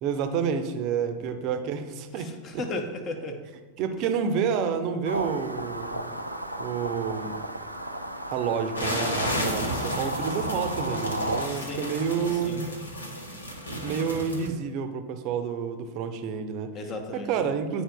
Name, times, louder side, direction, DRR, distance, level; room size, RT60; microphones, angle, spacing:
voice 1, 0.0-2.6 3.8-6.2 6.6-7.4 8.3-12.7 13.8-16.7 17.1-17.8, right 6 dB, 40° right, 8 dB, 0.6 m, -29 dB
voice 2, 2.1-3.4 11.5-11.9 12.4-12.7 16.7-17.3, left 2 dB, 30° left, 5 dB, 0.9 m, -35 dB
sound 1, 5.1-11.5, right 1 dB, 90° right, 0.4 m, -34 dB
sound 2, 8.8-14.5, equal, 80° left, 1.1 m, -32 dB
10.0 x 4.3 x 2.3 m, 1.3 s
figure-of-eight pair, 90°, 0 cm